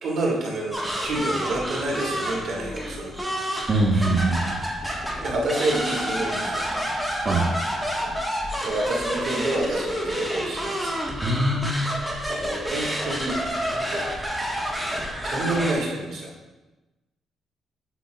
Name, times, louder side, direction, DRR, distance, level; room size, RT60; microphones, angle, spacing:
voice 1, 0.0-4.1 5.2-7.1 8.0-8.1 8.6-10.9 12.0-14.3 15.2-16.3, right 2 dB, 60° right, -3 dB, 1.7 m, -29 dB
sound 1, 0.7-15.7, equal, ahead, 1.2 m, -29 dB
voice 2, 3.7-4.6 6.7-6.8 7.2-7.5 11.2-11.8, right 2 dB, 40° right, -4 dB, 0.9 m, -23 dB
7.9 x 5.7 x 2.2 m, 1.1 s
cardioid pair, 90°, 0 cm